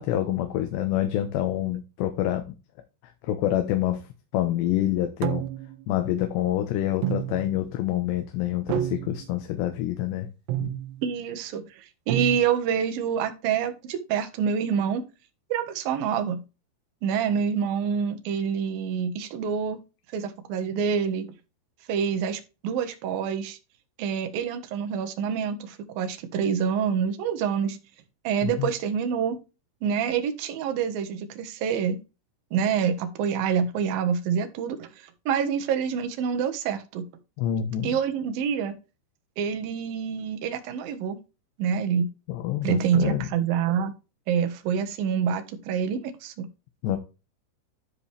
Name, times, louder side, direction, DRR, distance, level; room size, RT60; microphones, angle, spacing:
voice 1, 0.0-2.5 3.3-4.0 4.3-5.4 5.9-10.3 10.6-10.7 28.4-28.7 37.4-38.0 42.3-43.3 46.8-47.0, left 12 dB, 80° left, 3.3 m, -27 dB
sound 1, 5.2-5.8 7.0-7.7 8.7-9.3 10.5-11.0 12.1-12.4, right 13 dB, 80° right, 2.8 m, -29 dB
voice 2, 11.0-15.0 15.5-16.4 17.0-19.8 20.1-21.3 21.9-23.6 24.0-27.8 28.2-29.4 29.8-32.0 32.5-37.1 37.8-38.8 39.4-41.2 41.6-42.1 42.6-43.9 44.3-46.5, right 7 dB, 65° right, 3.0 m, -27 dB
13.0 x 5.1 x 3.4 m
omnidirectional pair, 4.9 m